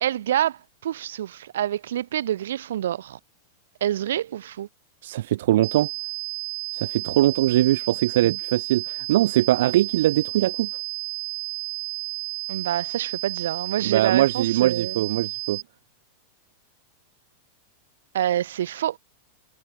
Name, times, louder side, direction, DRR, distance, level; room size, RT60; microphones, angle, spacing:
voice 1, 0.0-3.2 3.8-4.7 12.5-15.2 18.1-19.0, right 11 dB, 90° right, 2.0 m, -27 dB
voice 2, 5.0-5.9 6.7-10.7 13.8-15.6, right 14 dB, 70° right, 1.1 m, -21 dB
sound 1, 5.6-15.6, right 28 dB, 50° right, 5.7 m, -32 dB
supercardioid pair, 155°, 0 cm